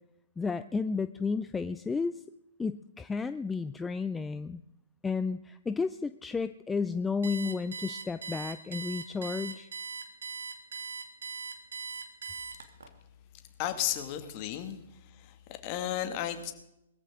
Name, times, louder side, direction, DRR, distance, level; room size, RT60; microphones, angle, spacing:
voice 1, 0.4-2.2 2.6-4.6 5.0-9.7, left 4 dB, 10° left, 12 dB, 0.5 m, -32 dB
Alarm, 7.2-12.9, right 5 dB, 70° right, 2.3 m, -40 dB
voice 2, 13.6-16.5, left 11 dB, 35° left, 7 dB, 2.2 m, -34 dB
21.5 x 14.0 x 3.8 m, 0.84 s
figure-of-eight pair, 120°, 0 cm